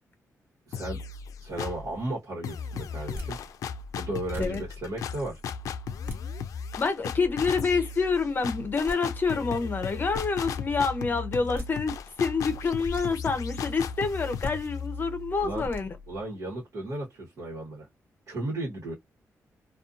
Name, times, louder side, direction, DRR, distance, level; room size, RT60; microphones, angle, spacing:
sound 1, 0.7-1.9 2.4-16.1, left 6 dB, 85° left, 0.4 m, -36 dB
voice 1, 0.7-1.0 1.4-3.4 3.9-5.4 15.4-15.7 16.1-17.9 18.3-18.9, right 1 dB, 70° right, 1.1 m, -34 dB
sound 2, 3.1-3.3 4.0-4.1 4.3-4.6 5.8-6.2 6.9-7.5 8.6-8.7 8.9-9.0 9.8-10.3 11.3-11.7 12.6-13.0 14.2-14.5 15.4-15.8, equal, 40° right, 1.4 m, -39 dB
voice 2, 6.8-15.9, left 4 dB, 35° left, 0.7 m, -27 dB
2.6 x 2.3 x 2.4 m
wide cardioid pair, 140°, 6 cm